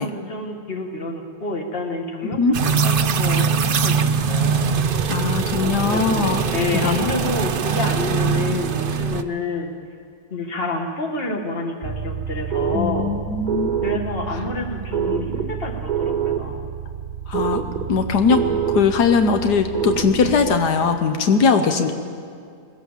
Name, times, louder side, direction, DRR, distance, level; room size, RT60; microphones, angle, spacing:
voice 1, 0.0-2.4 2.6-4.7 5.6-6.0 6.5-9.7 10.3-13.1 13.8-16.7, left 3 dB, 35° left, 3 dB, 2.0 m, -28 dB
sound 1, 2.5-9.2, right 5 dB, 50° right, 0.6 m, -21 dB
voice 2, 5.1-6.4 6.8-7.0 12.7-13.7 14.3-14.4 17.3-17.6 17.9-18.4 18.7-21.9, left 5 dB, 85° left, 6 dB, 1.6 m, -20 dB
sound 2, 11.8-20.6, right 8 dB, 30° right, 1.0 m, -27 dB
21.5 x 17.0 x 7.4 m, 2.3 s
omnidirectional pair, 1.7 m